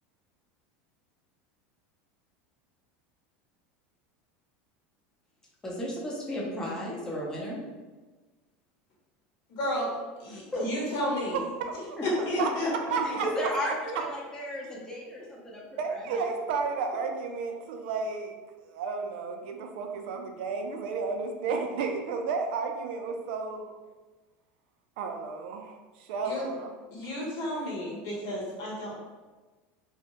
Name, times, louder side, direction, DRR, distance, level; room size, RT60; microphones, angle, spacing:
voice 1, 5.6-7.6 10.3-10.7 12.0-12.1 12.4-12.5 13.0-15.6 15.9-16.2, equal, 10° left, -4 dB, 0.7 m, -34 dB
voice 2, 9.5-9.9 10.2-11.4 12.0-12.7 26.2-26.5 26.9-29.0, left 1 dB, 65° left, -4 dB, 1.0 m, -32 dB
voice 3, 11.6-13.5 15.6-18.3 18.6-23.7 25.0-26.7 27.0-27.1, right 4 dB, 75° right, 4 dB, 0.4 m, -33 dB
2.6 x 2.0 x 2.9 m, 1.3 s
supercardioid pair, 130°, 6 cm